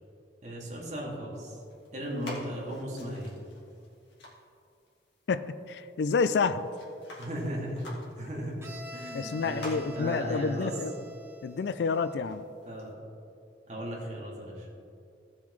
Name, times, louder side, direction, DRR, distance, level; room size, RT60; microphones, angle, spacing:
voice 1, 0.4-1.6 1.9-3.3 7.2-7.8 8.2-8.6 8.9-10.7 12.6-12.9 13.7-14.7, equal, 40° right, -4 dB, 2.3 m, -36 dB
sound 1, 1.3-12.9, left 1 dB, 85° left, 2.1 m, -51 dB
voice 2, 5.3-6.7 9.1-10.9 11.4-12.4, left 4 dB, 65° left, 13 dB, 0.4 m, -29 dB
Bowed string instrument, 8.6-12.3, equal, 15° right, 1.0 m, -47 dB
15.5 x 7.1 x 3.2 m, 2.5 s
head